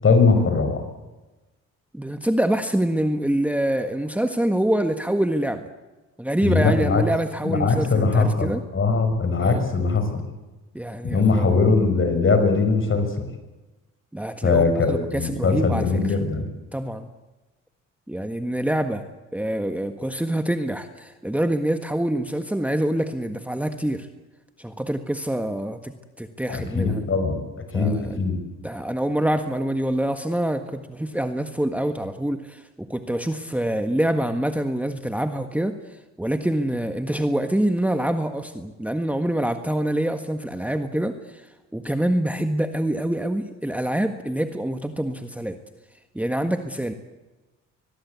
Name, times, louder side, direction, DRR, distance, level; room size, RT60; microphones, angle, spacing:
voice 1, 0.0-0.8 6.4-7.0 7.4-10.2 11.1-13.2 14.4-16.5 26.5-27.4 27.7-28.4, left 4 dB, 45° left, 8 dB, 6.0 m, -21 dB
voice 2, 1.9-5.7 6.2-8.6 9.4-9.6 10.7-11.6 14.1-16.2 16.7-17.1 18.1-19.0 19.3-24.1 24.6-27.0 27.7-28.2 28.6-45.6 46.1-46.9, right 1 dB, 5° right, 7 dB, 1.6 m, -26 dB
23.5 x 20.5 x 8.3 m, 1.1 s
cardioid pair, 90°, 30 cm